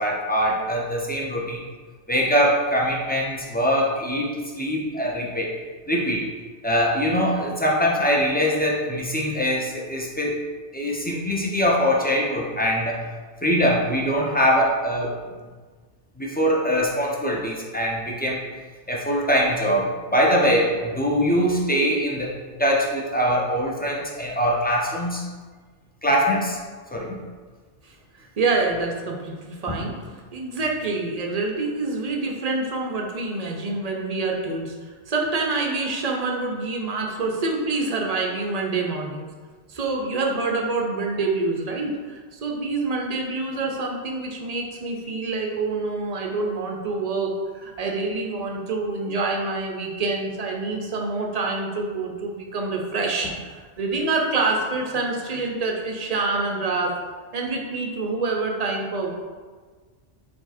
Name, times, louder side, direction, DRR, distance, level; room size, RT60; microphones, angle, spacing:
voice 1, 0.0-1.6 2.1-5.6 5.9-6.3 6.6-10.4 10.7-13.0 13.4-15.1 16.2-18.4 18.9-25.2 26.0-26.6 26.9-27.2, equal, 15° left, -4 dB, 0.4 m, -22 dB
voice 2, 28.4-29.9 30.3-39.2 39.7-53.4 53.8-57.0 57.3-59.1, right 3 dB, 45° right, 1 dB, 0.5 m, -26 dB
4.7 x 2.6 x 4.2 m, 1.5 s
omnidirectional pair, 1.2 m